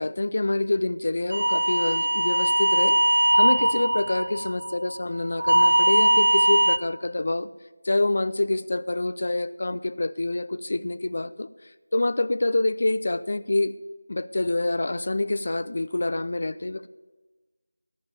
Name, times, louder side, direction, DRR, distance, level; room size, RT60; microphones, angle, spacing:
voice 1, 0.0-7.5 7.8-11.5 11.9-13.7 14.1-16.9, left 2 dB, 55° left, 15 dB, 0.6 m, -26 dB
sound 1, 1.3-5.0 5.4-6.8, right 1 dB, 70° right, 0.5 m, -21 dB
14.0 x 5.4 x 9.2 m, 1.2 s
figure-of-eight pair, 170°, 0 cm